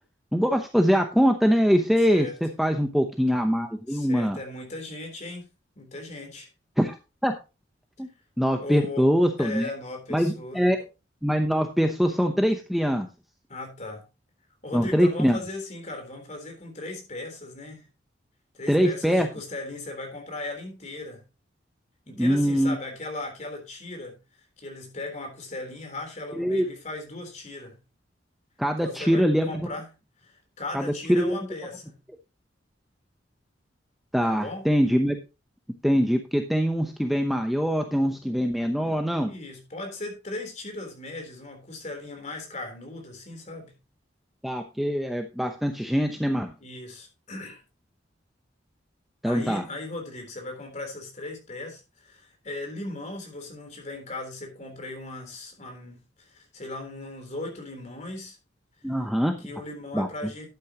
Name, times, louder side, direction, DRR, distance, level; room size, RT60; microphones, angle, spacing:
voice 1, 0.3-4.4 6.8-7.0 7.2-7.3 8.0-8.1 8.4-9.7 10.1-10.8 11.2-13.1 14.7-15.4 18.7-19.3 22.2-22.8 26.4-26.7 28.6-29.5 30.7-31.4 34.1-35.2 35.8-39.3 44.4-46.5 49.2-49.6 58.8-59.4 59.9-60.1, equal, ahead, 0.8 m, -23 dB
voice 2, 3.9-5.5 5.8-6.5 8.6-9.1 9.4-10.7 13.5-14.0 14.6-17.9 18.5-21.2 22.1-24.2 24.6-27.8 28.8-29.9 30.2-32.0 34.2-34.7 39.2-43.7 46.6-47.6 49.2-58.4 58.8-58.9 59.4-60.5, left 2 dB, 40° left, 3.6 m, -38 dB
11.5 x 9.1 x 2.9 m
head